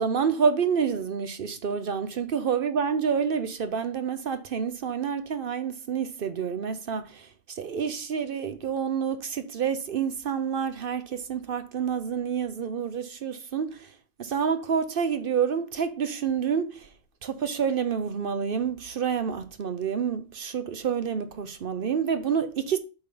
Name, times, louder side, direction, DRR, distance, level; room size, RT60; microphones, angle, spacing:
voice 1, 0.0-13.9 14.2-16.9 17.2-22.8, right 7 dB, 55° right, 0.6 m, -28 dB
8.2 x 5.3 x 3.8 m
omnidirectional pair, 1.5 m